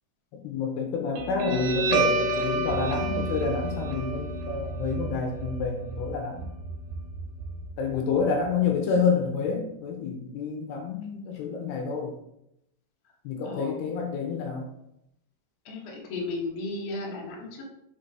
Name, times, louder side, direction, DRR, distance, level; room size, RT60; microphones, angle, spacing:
voice 1, 0.4-6.5 7.8-12.1 13.2-14.7, left 5 dB, 80° left, 2 dB, 2.8 m, -28 dB
Guitar, 1.2-8.2, right 2 dB, 75° right, 3.2 m, -29 dB
voice 2, 13.4-13.9 15.7-17.6, left 2 dB, 55° left, -3 dB, 1.8 m, -35 dB
6.5 x 4.5 x 4.4 m, 0.80 s
omnidirectional pair, 4.9 m